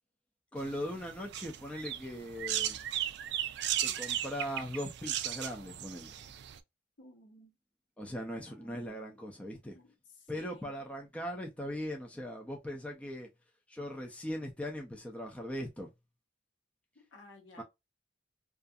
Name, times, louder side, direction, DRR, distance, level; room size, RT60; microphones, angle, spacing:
voice 1, 0.5-2.8 3.8-6.2 8.0-9.8 10.3-13.3 13.7-15.9 17.6-17.7, equal, 5° left, 0.4 m, -39 dB
sound 1, 0.6-6.6, right 11 dB, 60° right, 0.3 m, -36 dB
voice 2, 7.0-7.5 8.5-9.1 9.7-9.9 10.3-10.7 17.0-17.6, left 1 dB, 70° left, 0.9 m, -55 dB
2.4 x 2.4 x 2.5 m
head